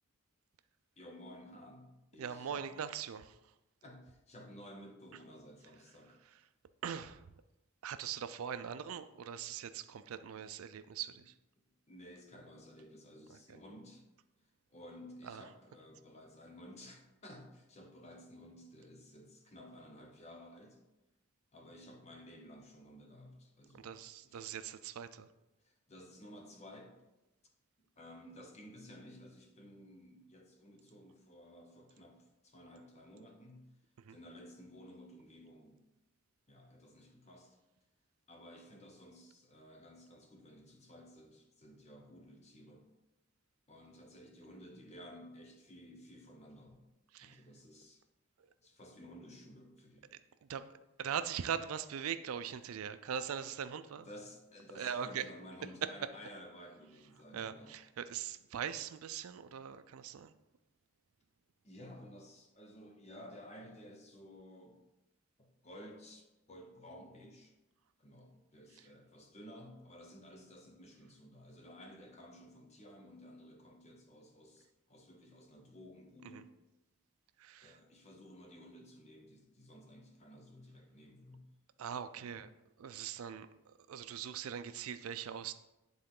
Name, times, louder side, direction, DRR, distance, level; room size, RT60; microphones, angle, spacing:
voice 1, 1.0-2.7 3.8-6.2 11.1-11.2 11.6-14.1 14.7-20.8 21.5-23.9 24.2-24.6 25.6-26.9 28.0-33.7 34.1-35.8 36.5-37.6 38.3-42.9 43.7-46.8 47.2-48.0 48.6-50.1 53.9-57.8 61.6-64.8 65.4-67.5 68.0-76.5 77.6-81.5 82.2-82.4, equal, 30° left, 2 dB, 1.0 m, -54 dB
voice 2, 2.2-3.4 6.8-7.2 7.8-11.3 15.2-15.4 23.7-25.3 34.0-34.2 47.1-47.4 50.5-50.6 51.0-54.1 54.8-55.2 57.3-60.3 76.3-76.4 77.4-77.8 81.8-82.5 82.8-85.5, right 8 dB, 80° right, 12 dB, 0.4 m, -41 dB
10.0 x 3.8 x 3.7 m, 0.97 s
head